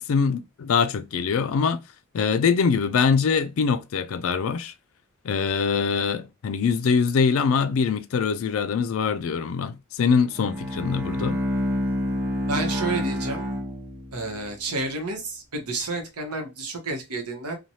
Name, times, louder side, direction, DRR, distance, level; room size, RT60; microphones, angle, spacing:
voice 1, 0.0-1.8 2.1-4.7 5.2-11.4, left 5 dB, 65° left, 0.4 m, -23 dB
Bowed string instrument, 10.3-14.4, left 1 dB, 10° right, 0.5 m, -28 dB
voice 2, 12.5-13.4 14.1-17.6, right 2 dB, 90° right, 1.0 m, -30 dB
3.1 x 2.2 x 2.7 m
head